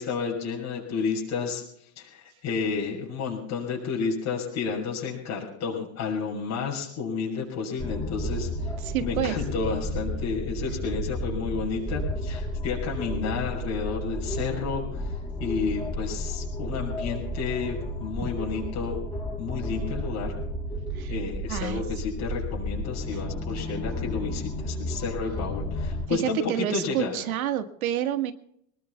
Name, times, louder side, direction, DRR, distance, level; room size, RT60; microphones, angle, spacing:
voice 1, 0.0-8.7 9.0-19.0 19.4-20.3 21.1-27.2, left 5 dB, 40° left, -1 dB, 6.5 m, -31 dB
sound 1, 7.8-26.1, left 1 dB, 10° left, 6.3 m, -32 dB
voice 2, 8.8-9.4 18.2-18.3 20.9-21.1 21.5-21.8 26.1-28.3, right 11 dB, 90° right, 7 dB, 1.8 m, -28 dB
26.0 x 20.0 x 2.4 m, 0.71 s
supercardioid pair, 120°, 41 cm